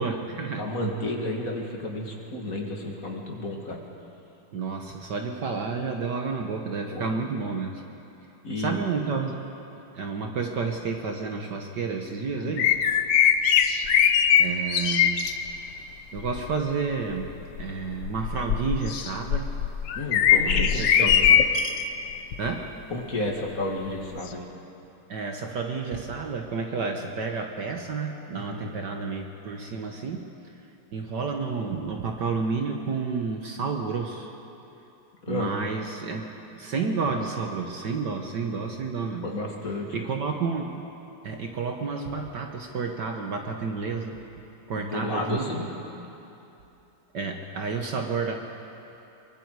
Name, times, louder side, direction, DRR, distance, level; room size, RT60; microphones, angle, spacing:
voice 1, 0.0-0.7 4.5-7.8 8.6-9.4 9.9-12.7 13.8-15.2 16.1-19.5 20.4-21.4 22.4-22.7 25.1-30.3 30.9-34.3 35.3-36.2 36.5-39.2 39.9-40.9 41.2-44.2 44.7-45.4 47.1-48.4, right 5 dB, 55° right, 3 dB, 1.6 m, -30 dB
voice 2, 0.6-3.8 6.9-7.2 8.4-8.8 12.3-12.6 20.0-21.3 22.9-24.4 28.3-28.7 35.2-35.5 39.2-39.9 44.8-45.7, left 2 dB, 40° left, 0 dB, 2.4 m, -32 dB
sound 1, 12.6-15.3 16.2-16.5 17.1-21.8 22.3-22.5 24.3-24.4, left 8 dB, 65° left, 1.4 m, -21 dB
24.0 x 23.5 x 4.8 m, 2.9 s
omnidirectional pair, 2.4 m